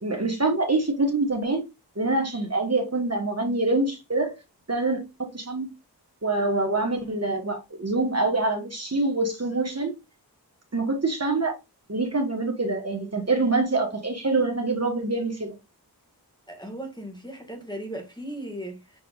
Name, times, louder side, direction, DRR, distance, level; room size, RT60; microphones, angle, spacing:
voice 1, 0.0-1.6 2.0-4.3 4.7-5.7 6.2-9.9 10.7-11.5 11.9-15.5, right 2 dB, 40° right, 1.3 m, -25 dB
voice 2, 16.5-19.0, right 1 dB, 10° left, 1.6 m, -37 dB
6.5 x 3.4 x 2.4 m
wide cardioid pair, 45°, 40 cm